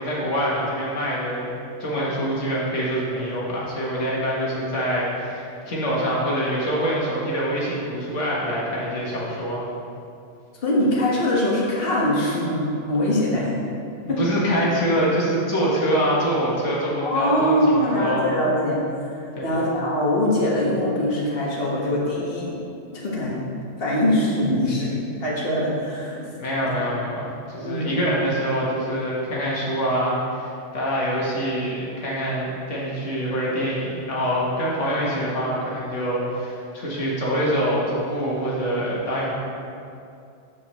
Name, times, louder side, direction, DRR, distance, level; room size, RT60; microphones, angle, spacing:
voice 1, 0.0-1.5 1.8-9.6 14.0-18.2 19.4-19.6 26.4-39.3, equal, 80° left, -6 dB, 1.7 m, -25 dB
voice 2, 10.6-13.5 14.1-14.2 17.0-18.8 19.1-22.5 22.9-23.4 23.8-26.2 27.6-28.0, left 1 dB, 50° left, -6 dB, 1.6 m, -22 dB
14.0 x 4.7 x 3.1 m, 2.5 s
omnidirectional pair, 1.2 m